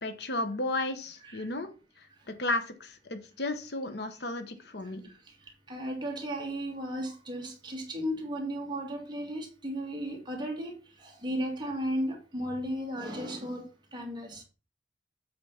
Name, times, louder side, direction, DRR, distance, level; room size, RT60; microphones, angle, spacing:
voice 1, 0.0-1.7 2.0-5.0, left 2 dB, 60° left, 1.1 m, -34 dB
voice 2, 5.7-13.6 13.9-14.4, equal, 25° right, 2.2 m, -35 dB
8.0 x 4.2 x 5.7 m
head